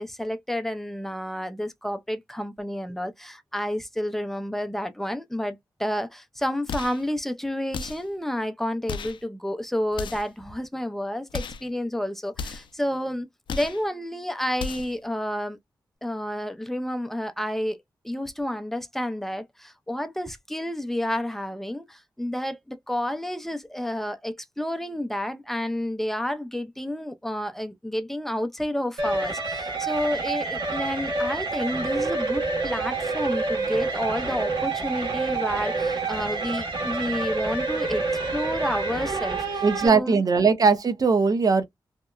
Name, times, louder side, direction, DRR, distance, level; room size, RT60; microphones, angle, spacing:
voice 1, 0.0-13.3 13.5-15.6 16.0-17.8 18.0-38.0 38.3-40.2, left 1 dB, 5° left, 0.4 m, -30 dB
sound 1, 6.7-7.1 7.7-8.1 8.9-9.2 9.9-10.4 11.3-11.7 12.3-12.8 13.5-13.8 14.5-15.0, left 5 dB, 80° left, 0.4 m, -34 dB
sound 2, 29.0-39.9, right 3 dB, 80° right, 1.2 m, -28 dB
voice 2, 39.6-41.6, right 4 dB, 50° right, 0.6 m, -20 dB
2.8 x 2.1 x 2.2 m
cardioid pair, 80°, 8 cm